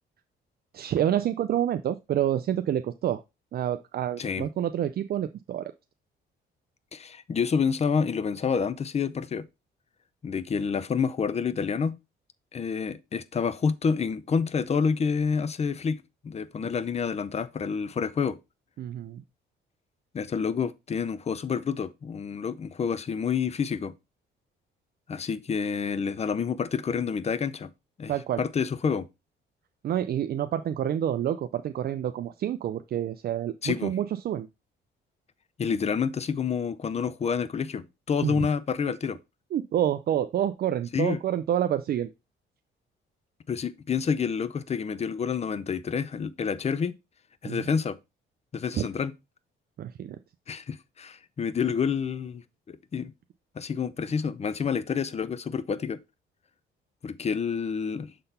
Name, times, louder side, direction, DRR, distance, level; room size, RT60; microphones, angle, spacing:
voice 1, 0.7-3.2 3.5-5.7 18.8-19.2 28.1-28.4 29.8-34.5 38.2-38.5 39.5-42.1 47.4-47.7 48.7-48.9 49.8-50.2, right 10 dB, 50° right, 0.4 m, -28 dB
voice 2, 4.2-4.5 6.9-9.4 10.2-11.9 12.5-18.4 20.1-23.9 25.1-27.7 28.0-29.1 33.6-33.9 35.6-39.2 40.9-41.2 43.5-47.0 47.4-48.0 48.5-49.1 50.5-53.1 53.6-56.0 57.0-58.1, left 6 dB, 35° left, 0.6 m, -28 dB
6.7 x 3.9 x 4.1 m
cardioid pair, 90°, 20 cm